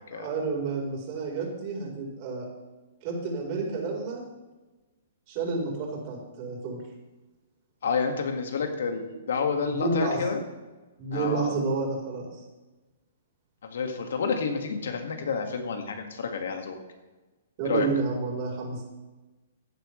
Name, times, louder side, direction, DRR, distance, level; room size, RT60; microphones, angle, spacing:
voice 1, 0.1-2.5 3.0-4.2 5.3-6.8 9.7-10.2 11.0-12.3 17.6-18.9, right 3 dB, 45° right, -1 dB, 4.2 m, -30 dB
voice 2, 7.8-10.4 11.1-11.6 13.6-16.8 17.6-17.9, left 5 dB, 70° left, 5 dB, 1.9 m, -29 dB
15.0 x 9.7 x 3.3 m, 1.2 s
hypercardioid pair, 130°, 0 cm